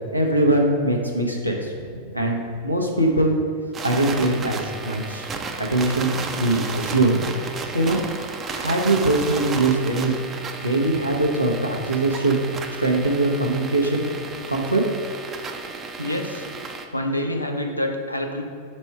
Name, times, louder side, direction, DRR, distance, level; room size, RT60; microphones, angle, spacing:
voice 1, 0.1-3.4 3.8-5.3 5.6-7.2 7.7-8.0 8.5-10.1 10.6-12.4 12.8-14.1 14.5-14.8, right 2 dB, 90° right, 0 dB, 0.8 m, -22 dB
sound 1, 3.7-16.9, right 4 dB, 25° right, 0.5 m, -33 dB
voice 2, 16.0-16.5 16.9-18.4, left 1 dB, 85° left, 3 dB, 0.6 m, -27 dB
5.3 x 4.3 x 4.6 m, 2.3 s
figure-of-eight pair, 90°, 0 cm